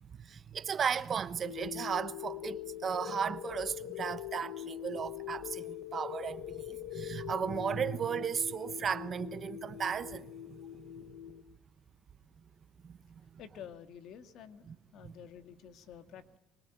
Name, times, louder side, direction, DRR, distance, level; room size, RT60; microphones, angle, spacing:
voice 1, 0.0-10.9 12.8-12.9 13.3-13.4 14.7-14.8 15.0-15.2, right 7 dB, 35° right, 1.0 m, -35 dB
sound 1, 1.4-11.4, left 13 dB, 85° left, 1.3 m, -43 dB
voice 2, 13.4-16.4, left 9 dB, 60° left, 1.9 m, -50 dB
25.0 x 23.0 x 9.0 m
cardioid pair, 130°, 0 cm